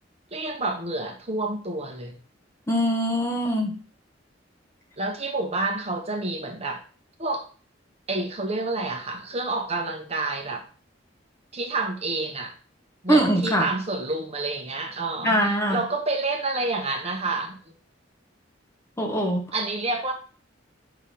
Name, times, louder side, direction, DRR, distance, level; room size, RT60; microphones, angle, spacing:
voice 1, 0.3-2.1 5.0-6.8 7.2-7.5 8.1-10.7 11.5-12.5 13.0-17.6 19.5-20.1, right 2 dB, 35° right, 1.1 m, -29 dB
voice 2, 2.7-3.8 13.1-13.7 15.2-15.8 19.0-19.5, right 1 dB, 15° left, 1.1 m, -22 dB
5.8 x 3.7 x 4.9 m
head